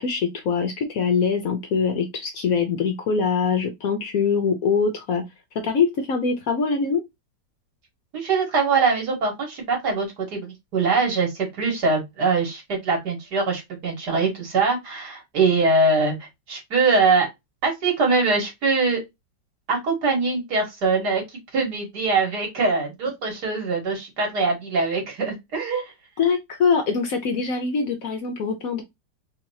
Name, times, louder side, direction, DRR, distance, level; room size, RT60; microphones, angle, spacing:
voice 1, 0.0-5.2 5.5-7.0 26.2-28.8, left 5 dB, 60° left, 1.0 m, -23 dB
voice 2, 8.1-17.3 17.6-19.0 19.7-21.2 21.5-25.9, right 4 dB, 65° right, 2.2 m, -23 dB
3.8 x 2.9 x 2.6 m
omnidirectional pair, 1.9 m